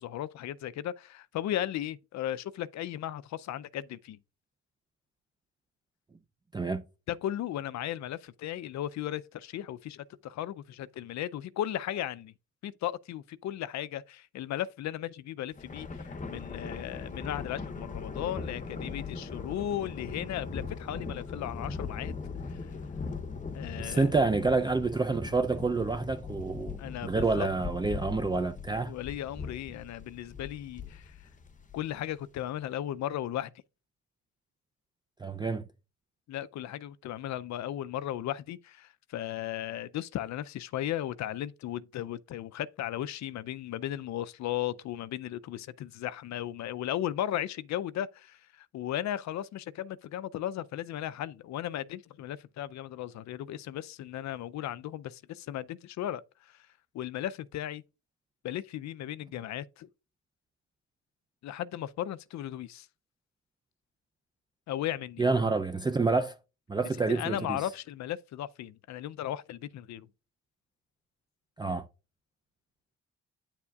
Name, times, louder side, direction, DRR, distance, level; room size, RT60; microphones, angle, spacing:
voice 1, 0.0-4.2 7.1-12.3 12.6-22.1 22.4-22.7 23.5-24.1 26.8-27.5 28.9-31.1 31.7-33.5 36.3-56.7 56.9-57.8 58.4-59.9 61.4-62.9 64.7-65.2 67.1-70.1, left 12 dB, 65° left, 0.5 m, -36 dB
voice 2, 6.5-6.8 23.8-26.8 27.0-29.0 35.2-35.7 65.2-66.4 66.7-67.6 71.6-71.9, right 3 dB, 15° right, 0.5 m, -28 dB
Thunder, 15.5-32.1, left 4 dB, 25° left, 0.8 m, -40 dB
9.3 x 7.1 x 2.3 m
cardioid pair, 90°, 30 cm